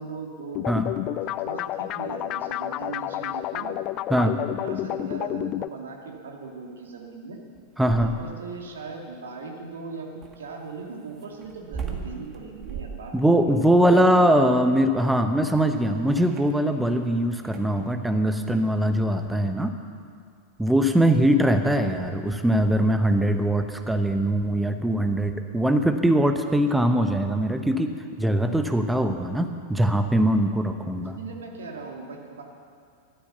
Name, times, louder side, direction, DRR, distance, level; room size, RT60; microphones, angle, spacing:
voice 1, 0.0-0.6 1.0-3.8 4.2-7.4 7.8-14.4 31.0-32.4, right 4 dB, 65° right, 1 dB, 2.3 m, -39 dB
sound 1, 0.5-5.7, left 14 dB, 35° left, 0.4 m, -30 dB
sound 2, 7.5-8.4 10.2-17.1 17.4-17.8 19.1-19.4, right 7 dB, 25° right, 1.8 m, -39 dB
voice 2, 7.8-8.1 13.1-19.7 20.6-31.2, right 1 dB, 5° right, 7 dB, 1.0 m, -22 dB
14.5 x 12.5 x 7.0 m, 2.2 s
figure-of-eight pair, 90°, 0 cm